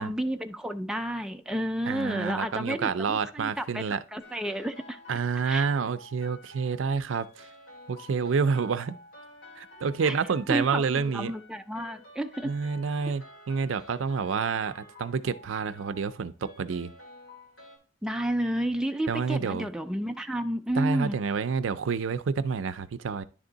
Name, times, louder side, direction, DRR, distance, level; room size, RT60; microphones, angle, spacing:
voice 1, 0.0-5.0 5.5-5.6 10.0-10.1 10.5-12.5 18.0-21.2, right 1 dB, 5° right, 0.4 m, -31 dB
voice 2, 1.9-4.0 5.1-7.5 7.9-9.0 9.6-11.3 12.4-16.9 19.1-19.7 20.7-23.2, right 5 dB, 90° right, 0.5 m, -28 dB
sound 1, 4.2-17.8, left 2 dB, 90° left, 2.5 m, -50 dB
10.0 x 3.5 x 3.9 m
head